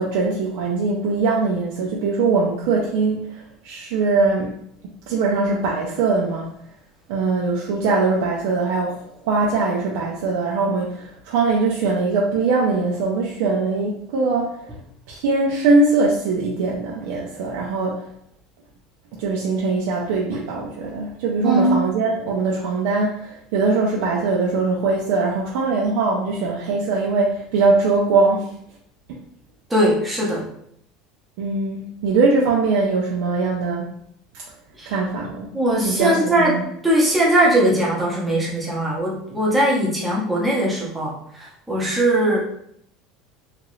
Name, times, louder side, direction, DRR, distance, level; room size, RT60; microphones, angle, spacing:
voice 1, 0.0-4.6 5.1-6.5 7.1-9.0 9.2-14.5 15.1-18.0 19.2-28.5 29.1-29.2 31.4-33.9 34.9-35.5 35.8-36.6, right 3 dB, 70° right, -3 dB, 0.5 m, -21 dB
voice 2, 21.4-21.8 29.7-30.5 34.8-34.9 35.5-42.4, right 1 dB, 5° right, -5 dB, 0.8 m, -20 dB
2.9 x 2.4 x 3.1 m, 0.71 s
cardioid pair, 160°, 0 cm